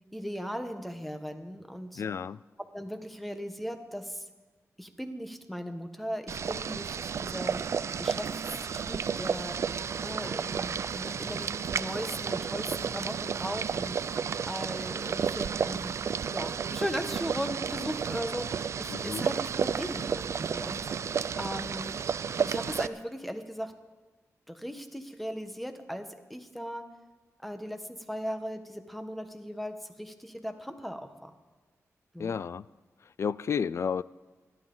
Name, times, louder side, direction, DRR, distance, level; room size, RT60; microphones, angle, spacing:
voice 1, 0.1-2.0 2.7-4.3 4.8-7.6 8.0-9.6 10.0-14.0 14.5-16.0 16.3-20.9 21.4-22.0 22.4-23.7 24.5-26.8 27.4-31.3 32.1-32.4, equal, ahead, 7 dB, 1.2 m, -38 dB
voice 2, 2.0-2.4 18.9-19.2 32.2-32.6 33.2-34.0, left 6 dB, 55° left, 18 dB, 0.3 m, -31 dB
Boiling, 6.3-22.9, right 6 dB, 60° right, 0.4 m, -32 dB
27.0 x 11.5 x 3.9 m, 1.3 s
wide cardioid pair, 135°, 6 cm